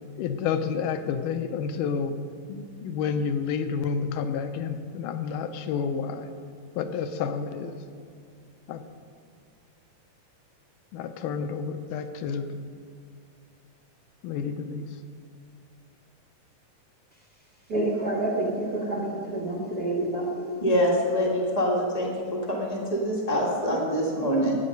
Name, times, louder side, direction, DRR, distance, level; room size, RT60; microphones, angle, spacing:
voice 1, 0.2-2.2 2.5-6.3 6.8-7.8 8.7-8.8 10.9-12.6 14.2-14.9, left 6 dB, 80° left, 9 dB, 2.2 m, -30 dB
voice 2, 17.7-20.7, right 2 dB, 75° right, -2 dB, 0.8 m, -28 dB
voice 3, 20.6-24.6, equal, 40° left, -2 dB, 0.5 m, -25 dB
12.0 x 9.2 x 5.3 m, 2.3 s
omnidirectional pair, 3.8 m